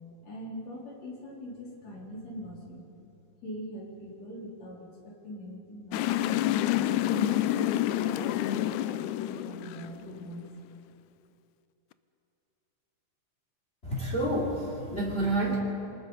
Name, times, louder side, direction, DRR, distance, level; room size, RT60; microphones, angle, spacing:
voice 1, 0.2-2.9 3.4-6.1 6.6-8.8 9.1-10.4, left 1 dB, 60° left, -2 dB, 4.7 m, -41 dB
sound 1, 5.9-10.3, left 13 dB, 80° left, 2.0 m, -28 dB
voice 2, 13.8-15.6, right 1 dB, 20° left, -3 dB, 3.4 m, -29 dB
26.0 x 20.0 x 5.5 m, 2.9 s
omnidirectional pair, 3.4 m